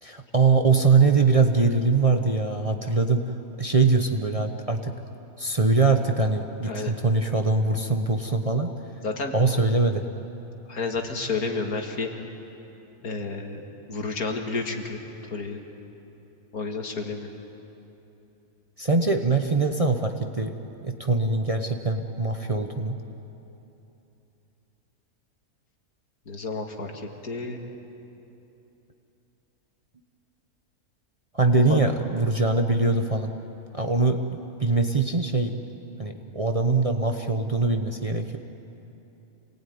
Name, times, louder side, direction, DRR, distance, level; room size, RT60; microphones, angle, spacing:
voice 1, 0.0-3.2 3.6-4.9 5.4-8.7 9.3-10.0 18.8-20.6 20.8-23.0 31.3-33.3 33.7-35.5 36.0-38.4, right 3 dB, 30° right, 4 dB, 0.9 m, -22 dB
voice 2, 9.0-9.3 10.7-12.1 13.0-13.6 13.9-15.0 15.3-15.6 16.5-17.3 26.3-27.6 31.6-31.8, left 4 dB, 80° left, 3 dB, 2.5 m, -30 dB
27.0 x 19.0 x 9.5 m, 3.0 s
omnidirectional pair, 1.6 m